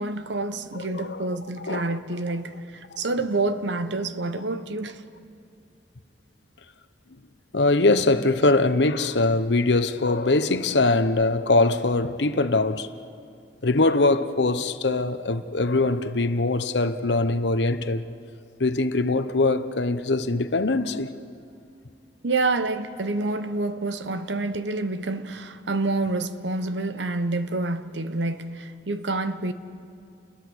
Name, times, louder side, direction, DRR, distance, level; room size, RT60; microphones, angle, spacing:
voice 1, 0.0-5.0 22.2-29.5, right 2 dB, 80° right, 1.1 m, -28 dB
voice 2, 0.7-1.4 1.6-2.0 7.5-12.9 13.6-18.0 18.6-21.1, left 2 dB, 70° left, 1.0 m, -22 dB
30.0 x 21.5 x 6.4 m
head